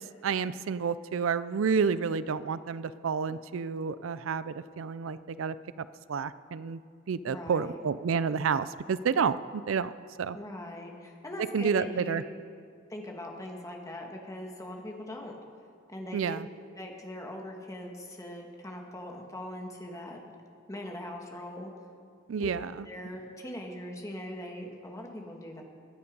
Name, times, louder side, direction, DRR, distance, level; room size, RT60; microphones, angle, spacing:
voice 1, 0.2-6.8 7.1-9.9 10.2-10.4 11.5-12.2 16.1-16.5 22.3-22.8, right 6 dB, 80° right, 15 dB, 0.4 m, -30 dB
voice 2, 7.3-7.8 10.3-12.2 12.9-15.4 15.9-16.4 16.8-20.4 20.7-21.7 22.4-22.5 22.9-25.6, left 1 dB, 15° left, 1 dB, 1.8 m, -41 dB
22.0 x 9.5 x 5.3 m, 2.3 s
head